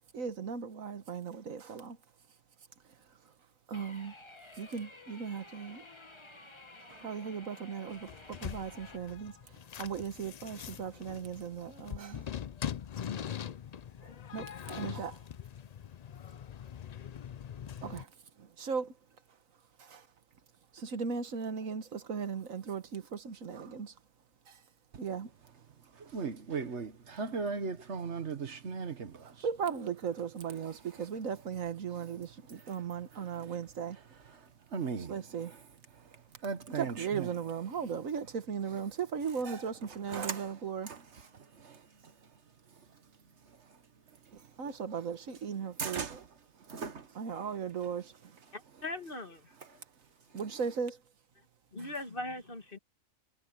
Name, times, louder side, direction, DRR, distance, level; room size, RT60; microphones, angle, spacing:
voice 1, 0.1-2.0 3.7-4.1 4.6-5.8 6.9-9.3 9.8-12.3 14.0-15.2 17.8-18.1 18.4-18.9 19.8-20.0 20.7-23.9 24.5-24.6 25.0-25.3 29.4-34.0 35.1-35.5 36.7-40.9 44.6-46.2 47.1-48.3 50.3-51.0, right 6 dB, 80° right, 1.7 m, -37 dB
sound 1, 3.7-9.0, left 2 dB, 20° left, 1.6 m, -52 dB
sound 2, 7.9-18.0, left 9 dB, 85° left, 0.3 m, -42 dB
voice 2, 26.0-29.3 33.4-33.6 34.7-35.1 36.4-37.3 40.1-40.5 40.9-41.0 41.6-41.8 45.8-46.2 46.7-47.1, right 5 dB, 60° right, 1.5 m, -37 dB
voice 3, 48.5-49.8 51.7-52.8, left 2 dB, 40° left, 2.0 m, -40 dB
omnidirectional pair, 1.4 m